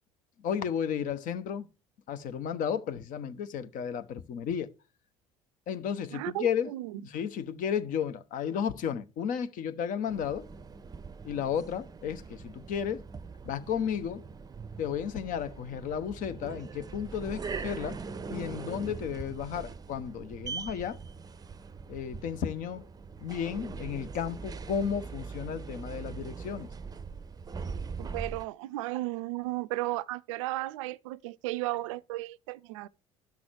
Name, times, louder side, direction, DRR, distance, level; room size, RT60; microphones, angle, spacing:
voice 1, 0.4-1.7 2.1-4.7 5.7-10.5 11.2-13.0 13.4-14.2 14.8-18.0 18.3-21.0 21.9-22.8 23.2-26.7, left 8 dB, 50° left, 0.9 m, -33 dB
voice 2, 6.1-7.0 28.0-32.9, right 18 dB, 70° right, 0.4 m, -34 dB
sound 1, 10.1-28.4, right 5 dB, 20° right, 0.6 m, -42 dB
11.5 x 6.2 x 4.5 m
figure-of-eight pair, 60°, 17 cm